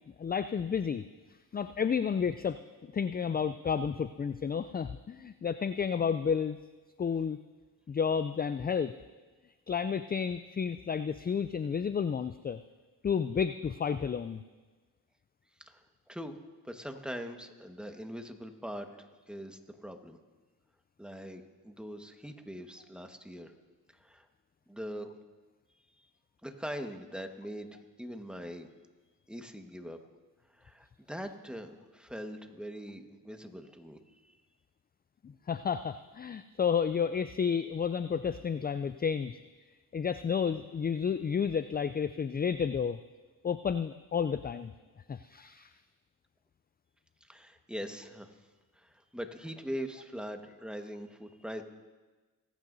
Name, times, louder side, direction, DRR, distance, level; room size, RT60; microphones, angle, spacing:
voice 1, 0.2-1.0 1.5-6.6 7.0-7.4 7.9-8.9 9.7-12.6 13.0-14.4 35.2-39.4 39.9-43.0 43.4-44.7 45.1-45.7, left 6 dB, 25° left, 12 dB, 0.4 m, -31 dB
voice 2, 15.6-16.4 16.6-20.2 21.0-23.5 23.9-24.3 24.7-25.1 26.4-28.7 29.3-30.0 30.5-34.4 47.2-48.3 48.7-51.6, equal, ahead, 5 dB, 1.5 m, -42 dB
20.0 x 9.4 x 2.7 m, 1.3 s
supercardioid pair, 40°, 43 cm